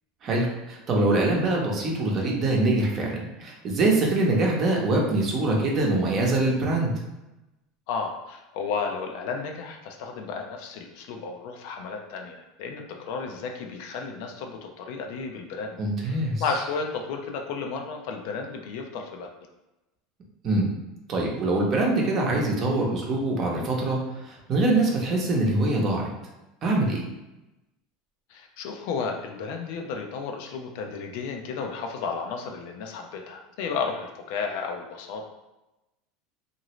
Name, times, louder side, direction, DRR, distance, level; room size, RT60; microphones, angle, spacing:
voice 1, 0.2-6.9 15.8-16.4 20.4-20.7 21.1-26.1 26.6-27.0, right 2 dB, 35° right, -1 dB, 0.7 m, -24 dB
voice 2, 7.9-19.3 26.9-27.0 28.3-35.2, left 5 dB, 65° left, 3 dB, 0.5 m, -33 dB
2.9 x 2.5 x 3.0 m, 0.98 s
supercardioid pair, 135°, 0 cm